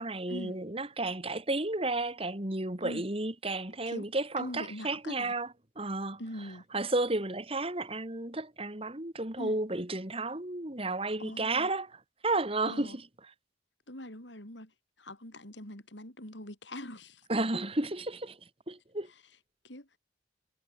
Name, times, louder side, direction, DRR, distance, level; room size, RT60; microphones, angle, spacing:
voice 1, 0.0-5.5 5.8-6.2 6.7-11.9 12.2-13.0 17.3-18.4 18.7-19.1, right 2 dB, 30° right, 2.4 m, -32 dB
voice 2, 4.4-5.4 6.2-6.7 9.4-9.6 11.2-11.7 12.7-13.0 13.9-14.7 15.0-17.3 19.0-19.3 19.6-20.0, left 1 dB, 70° left, 7.8 m, -43 dB
head